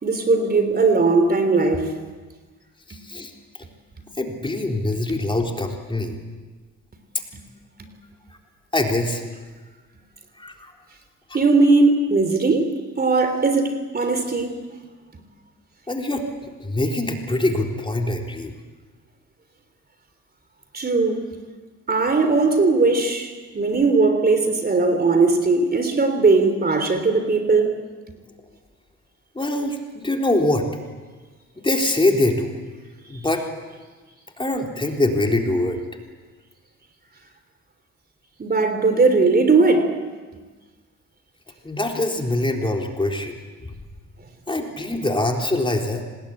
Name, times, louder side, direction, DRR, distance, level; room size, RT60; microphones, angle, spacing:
voice 1, 0.0-1.9 2.9-3.0 7.8-7.9 11.3-12.7 13.0-14.6 20.7-21.2 21.9-27.7 38.4-40.0, right 3 dB, 30° right, 8 dB, 3.4 m, -19 dB
voice 2, 2.9-3.3 4.2-6.2 8.7-9.2 10.4-10.7 11.3-11.4 15.9-16.2 16.6-18.5 29.4-30.7 31.6-32.6 33.1-33.4 34.4-35.8 41.6-43.3 43.6-43.7 44.5-46.0, left 2 dB, 15° left, 2 dB, 3.8 m, -23 dB
26.5 x 20.0 x 8.7 m, 1.4 s
cardioid pair, 90°, 30 cm